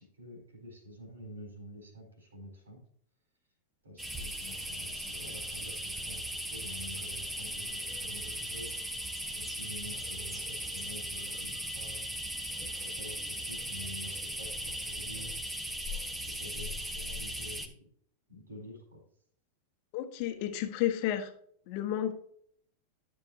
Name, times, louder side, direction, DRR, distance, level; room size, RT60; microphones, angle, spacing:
voice 1, 0.0-2.8 3.8-8.7 9.4-12.0 12.6-15.6 16.2-17.7 18.3-19.0, equal, 75° right, 1 dB, 4.0 m, -48 dB
sound 1, 4.0-17.7, equal, 5° right, 1.1 m, -38 dB
voice 2, 19.9-21.3 21.7-22.1, left 11 dB, 45° left, 8 dB, 1.1 m, -31 dB
12.5 x 6.9 x 2.7 m, 0.62 s
figure-of-eight pair, 90°, 0 cm